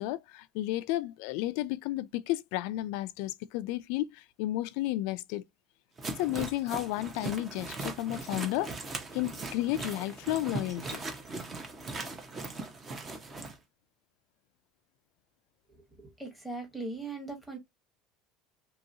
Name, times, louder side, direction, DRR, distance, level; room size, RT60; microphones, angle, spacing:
voice 1, 0.0-5.4 6.2-8.8 9.1-11.0, left 16 dB, 70° left, 0.3 m, -32 dB
sound 1, 6.0-13.5, right 3 dB, 20° right, 0.6 m, -39 dB
voice 2, 16.0-17.6, right 3 dB, ahead, 1.0 m, -39 dB
3.0 x 2.7 x 2.5 m
cardioid pair, 170°, 0 cm